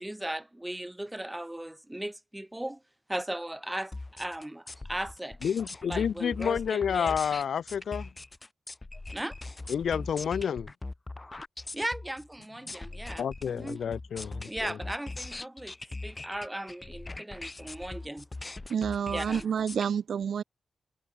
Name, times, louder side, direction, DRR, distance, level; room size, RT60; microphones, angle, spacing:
voice 1, 0.0-2.8 3.1-5.4 5.9-7.1 9.1-9.3 11.7-13.8 14.5-15.7 16.0-18.3 19.1-19.5, right 1 dB, 10° right, 2.0 m, -37 dB
sound 1, 3.9-19.9, left 2 dB, 20° left, 0.5 m, -41 dB
voice 2, 5.4-8.1 9.7-10.7 13.2-14.8, left 7 dB, 80° left, 0.8 m, -30 dB
voice 3, 18.7-20.4, right 7 dB, 75° right, 0.3 m, -29 dB
wide cardioid pair, 135°, 0 cm